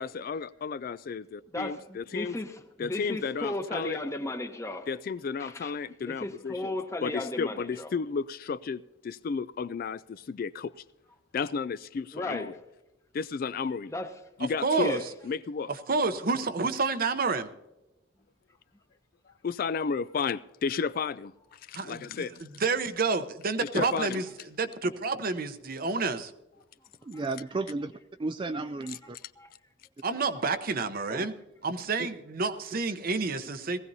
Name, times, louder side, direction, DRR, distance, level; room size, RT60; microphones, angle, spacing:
voice 1, 0.0-2.4 2.8-4.0 4.9-6.7 7.0-10.7 11.3-12.5 13.1-13.9 14.4-15.0 15.2-15.7 19.4-22.4 23.6-24.2, left 5 dB, 50° left, 0.3 m, -33 dB
voice 2, 1.5-4.9 5.4-5.7 6.1-7.9 12.1-12.5 13.9-14.1 14.8-15.0 27.1-27.2 29.4-29.5, left 1 dB, 15° left, 1.0 m, -35 dB
voice 3, 14.6-15.0 15.9-17.5 21.7-22.1 22.6-24.3 24.6-26.3 30.0-31.3 31.6-33.8, right 4 dB, 50° right, 0.8 m, -29 dB
voice 4, 27.0-27.9 28.2-29.2 31.1-31.3 32.0-32.1, right 3 dB, 25° right, 0.4 m, -33 dB
19.0 x 15.5 x 2.7 m
head